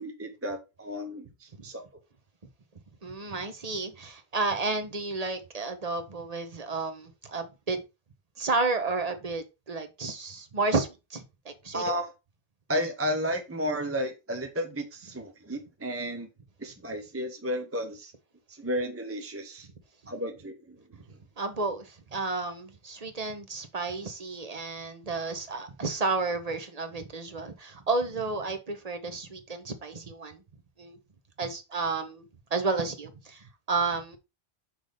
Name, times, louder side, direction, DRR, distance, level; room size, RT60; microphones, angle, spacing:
voice 1, 0.0-1.8 11.7-12.1 12.7-16.3 16.6-18.1 18.5-19.7 20.1-20.8, equal, 15° right, 0.6 m, -33 dB
voice 2, 3.0-7.8 8.4-11.9 21.4-30.4 30.8-31.0 31.4-32.2 32.5-34.2, right 3 dB, 40° right, 1.0 m, -31 dB
6.0 x 3.3 x 5.3 m
omnidirectional pair, 1.1 m